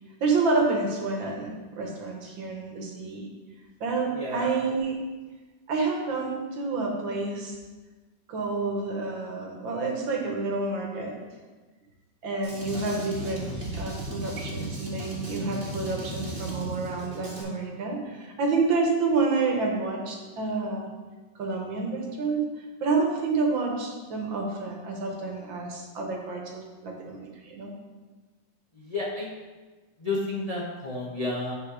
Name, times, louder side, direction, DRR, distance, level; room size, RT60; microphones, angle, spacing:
voice 1, 0.2-3.3 3.8-5.0 5.7-7.6 8.3-11.1 12.2-20.9 21.4-22.5 22.8-27.7, right 3 dB, 75° right, 1 dB, 1.9 m, -29 dB
voice 2, 4.1-4.5 28.7-29.3 30.0-31.5, left 2 dB, 30° left, -4 dB, 0.7 m, -31 dB
Drum kit, 12.4-17.4, right 1 dB, 30° right, 1.7 m, -36 dB
9.0 x 4.3 x 4.7 m, 1.3 s
omnidirectional pair, 2.1 m